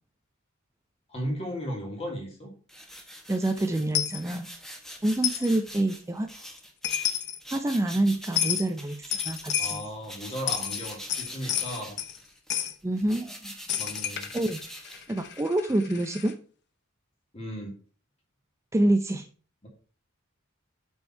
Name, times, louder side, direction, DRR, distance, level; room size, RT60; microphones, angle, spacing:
voice 1, 1.1-2.5 9.6-12.0 13.8-14.3 17.3-17.8 19.6-19.7, equal, 30° left, 0 dB, 2.5 m, -35 dB
sound 1, 2.7-9.8 10.0-15.5, equal, ahead, 1.2 m, -44 dB
voice 2, 3.3-4.5 5.0-6.3 7.5-9.8 12.8-13.5 14.3-14.6 15.1-16.3 18.7-19.2, right 1 dB, 15° right, 7 dB, 0.4 m, -27 dB
Coin (dropping), 3.9-4.2 5.2-5.5 6.6-6.7 6.8-7.4 8.4-8.7 9.1-9.9 10.3-12.2 12.5-12.7 13.7-16.3, left 10 dB, 55° left, 0.8 m, -30 dB
8.6 x 4.5 x 4.5 m, 0.39 s
head